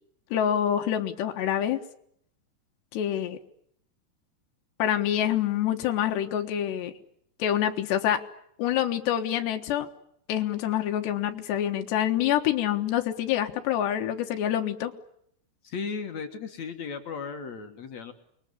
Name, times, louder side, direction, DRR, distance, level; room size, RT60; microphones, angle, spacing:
voice 1, 0.3-1.8 2.9-3.4 4.8-6.9 7.4-8.2 8.6-9.9 10.3-14.9, left 10 dB, 90° left, 5 dB, 3.6 m, -26 dB
voice 2, 15.6-18.1, left 5 dB, 50° left, 6 dB, 2.5 m, -36 dB
28.0 x 22.0 x 9.7 m, 0.72 s
omnidirectional pair, 4.7 m